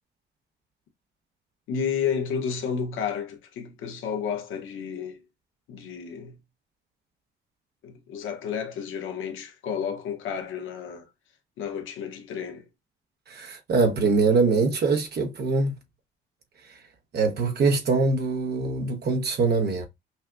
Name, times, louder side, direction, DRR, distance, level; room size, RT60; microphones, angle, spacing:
voice 1, 1.7-5.2 5.7-6.4 7.8-11.1 11.6-12.7, left 7 dB, 85° left, 1.1 m, -31 dB
voice 2, 13.3-15.8 16.6-16.8 17.1-19.9, right 4 dB, 55° right, 0.9 m, -23 dB
5.4 x 2.4 x 2.2 m
cardioid pair, 90°, 20 cm